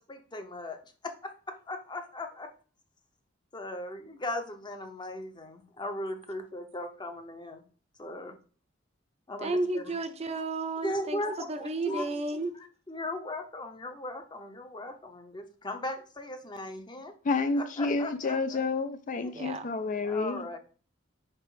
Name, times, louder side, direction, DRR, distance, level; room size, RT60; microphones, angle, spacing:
voice 1, 0.1-0.8 1.0-2.5 3.5-7.6 8.0-8.4 9.3-9.9 10.8-12.2 12.9-17.1 17.6-18.6 19.2-19.3 20.0-20.6, left 1 dB, 25° left, 0.8 m, -38 dB
voice 2, 9.4-11.2 11.5-12.5 19.3-19.6, right 2 dB, 35° right, 0.6 m, -32 dB
voice 3, 17.2-20.5, left 3 dB, 40° left, 0.4 m, -29 dB
5.0 x 4.4 x 4.9 m
head